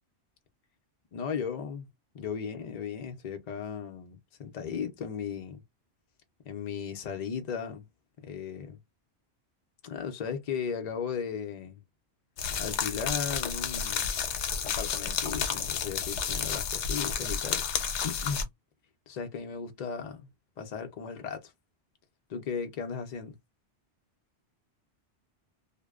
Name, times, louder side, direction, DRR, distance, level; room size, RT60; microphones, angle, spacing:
voice 1, 1.1-1.9 2.1-5.6 6.5-7.8 8.2-8.8 9.8-11.8 12.6-14.1 14.6-17.6 18.0-18.5 19.1-20.3 20.6-21.5 22.3-23.4, left 6 dB, 60° left, 0.4 m, -36 dB
sound 1, 12.4-18.4, left 7 dB, 90° left, 0.9 m, -31 dB
2.6 x 2.1 x 2.3 m
omnidirectional pair, 1.2 m